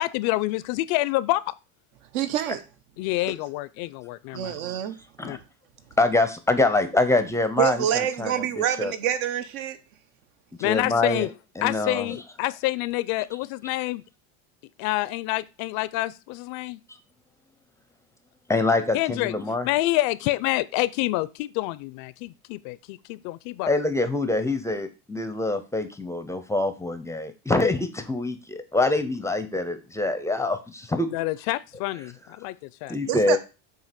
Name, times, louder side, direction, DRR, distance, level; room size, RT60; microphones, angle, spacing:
voice 1, 0.0-1.5 3.0-4.5 5.2-5.4 10.6-11.3 11.6-14.0 14.8-16.8 18.9-19.3 19.6-23.7 31.1-32.9, left 18 dB, 55° left, 0.5 m, -27 dB
voice 2, 2.1-2.6 4.3-5.0 7.6-9.8 33.0-33.4, right 10 dB, 75° right, 1.1 m, -26 dB
voice 3, 6.0-8.9 10.6-11.3 11.6-12.2 18.5-19.7 23.6-31.1 32.9-33.4, left 2 dB, 5° left, 0.5 m, -25 dB
7.5 x 2.9 x 5.8 m
supercardioid pair, 130°, 44 cm